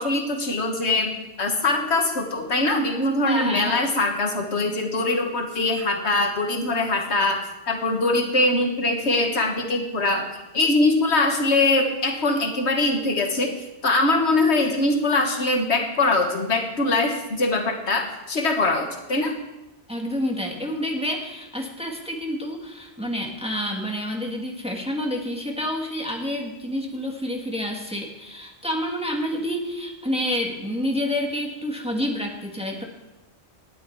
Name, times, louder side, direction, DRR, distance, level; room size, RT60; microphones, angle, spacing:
voice 1, 0.0-19.4, left 2 dB, 65° left, 4 dB, 1.7 m, -22 dB
voice 2, 3.2-3.8 19.9-32.8, equal, 5° right, 0 dB, 1.9 m, -28 dB
18.5 x 9.8 x 4.7 m, 1.0 s
omnidirectional pair, 1.2 m